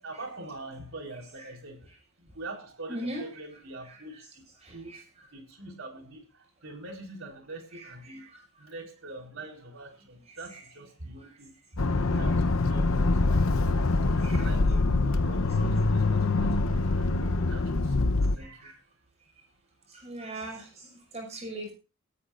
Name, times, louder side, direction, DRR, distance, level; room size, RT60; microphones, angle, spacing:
voice 1, 0.0-4.4 4.7-8.2 8.6-11.5 12.2-18.7, right 2 dB, 65° right, 2 dB, 4.5 m, -44 dB
voice 2, 2.9-3.5 3.8-4.0 4.6-5.3 7.7-8.7 10.3-10.7 11.2-11.3 12.1-12.4 14.2-14.5 16.8-16.9 18.4-18.8 19.9-21.7, right 1 dB, 30° right, 2 dB, 6.2 m, -41 dB
Accelerating revving vroom, 11.8-18.4, left 3 dB, 75° left, 0.9 m, -24 dB
19.5 x 14.0 x 2.6 m, 0.31 s
head